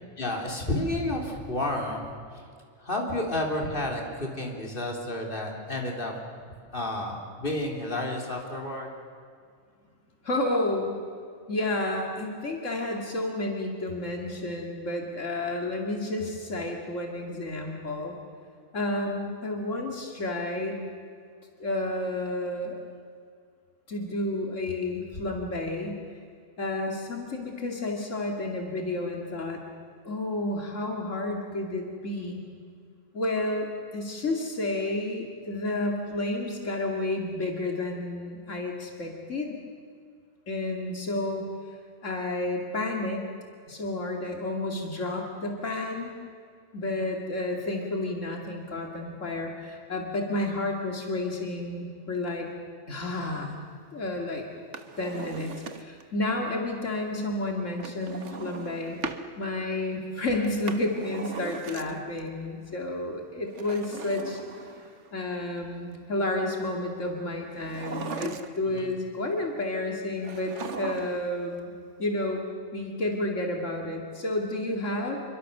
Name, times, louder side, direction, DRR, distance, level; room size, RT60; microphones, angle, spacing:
voice 1, 0.2-2.0 2.8-6.1 6.7-8.9 68.6-68.9, left 1 dB, 45° left, 0 dB, 3.7 m, -31 dB
voice 2, 10.2-11.0 11.5-18.1 18.7-20.8 21.6-22.8 23.9-26.0 26.6-29.6 30.0-32.4 33.1-39.6 40.5-41.5 42.0-43.3 43.7-46.1 46.7-52.5 52.9-53.6 53.9-54.4 55.0-59.0 59.4-64.4 65.1-71.7 72.0-72.4 72.7-75.2, left 2 dB, 80° left, 1 dB, 2.8 m, -31 dB
Drawer open or close, 54.6-56.1 57.8-59.3 60.4-62.2 63.5-65.1 67.6-68.8 70.2-71.4 71.6-71.7, right 5 dB, 70° right, 1.5 m, -38 dB
27.5 x 23.5 x 6.8 m, 2.2 s
omnidirectional pair, 1.3 m